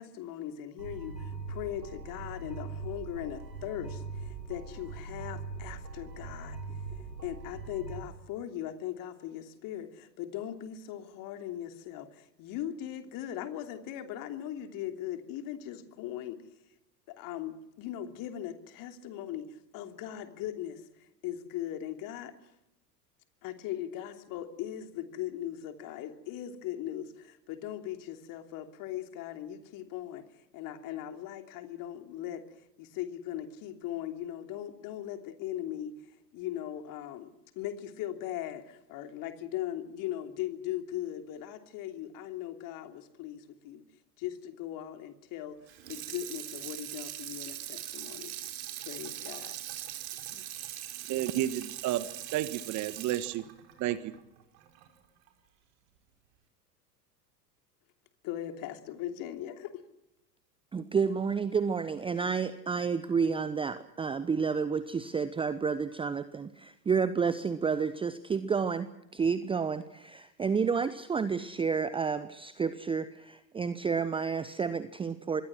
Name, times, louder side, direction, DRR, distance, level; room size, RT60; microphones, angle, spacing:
voice 1, 0.0-6.6 7.2-16.4 17.1-20.8 21.2-22.3 23.4-30.2 30.5-32.4 32.8-35.9 36.3-43.8 44.2-45.6 45.9-48.3 48.9-49.5 50.3-50.4 58.2-59.8, left 11 dB, 40° left, 3.1 m, -39 dB
sound 1, 0.8-8.0, right 4 dB, 85° right, 4.0 m, -41 dB
Water tap faucet / Sink (filling or washing), 45.7-54.9 55.3-55.4, right 13 dB, 50° right, 4.7 m, -41 dB
voice 2, 51.1-53.4 53.8-54.1, right 13 dB, 35° right, 1.5 m, -31 dB
voice 3, 60.7-75.4, right 5 dB, 10° right, 0.8 m, -30 dB
26.5 x 22.0 x 6.2 m
figure-of-eight pair, 85°, 49 cm